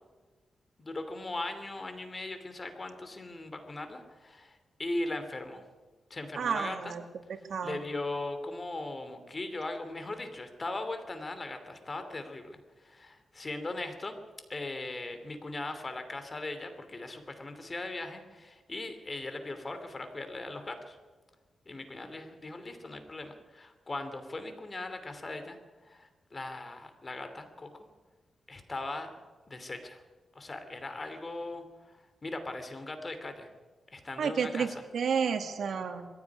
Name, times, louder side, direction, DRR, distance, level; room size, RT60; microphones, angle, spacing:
voice 1, 0.8-5.6 6.1-6.9 7.6-14.2 14.5-21.0 21.7-25.6 25.8-27.7 28.5-29.1 29.5-30.0 30.3-33.5 33.9-34.7, left 2 dB, 30° left, 8 dB, 2.9 m, -39 dB
voice 2, 6.4-7.0 7.5-7.8 34.2-36.1, right 6 dB, 80° right, 6 dB, 2.1 m, -31 dB
21.0 x 15.5 x 9.7 m, 1.3 s
wide cardioid pair, 105°, 0 cm